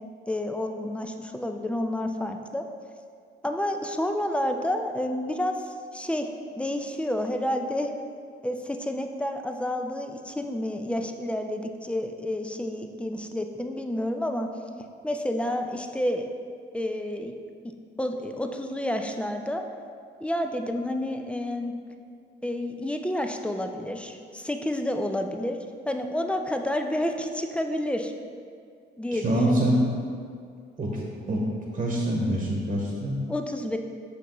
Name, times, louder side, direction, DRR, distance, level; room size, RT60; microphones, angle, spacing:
voice 1, 0.3-2.6 3.4-6.3 6.6-7.9 8.4-14.5 15.0-16.3 16.7-17.4 17.6-19.6 20.2-21.7 22.4-25.6 25.9-28.1 29.0-29.8 33.3-33.8, left 1 dB, 5° left, 5 dB, 0.4 m, -29 dB
voice 2, 29.1-29.8 30.8-31.4 31.7-33.2, right 1 dB, 35° right, -3 dB, 1.1 m, -25 dB
6.0 x 5.8 x 3.0 m, 2.2 s
cardioid pair, 90°, 20 cm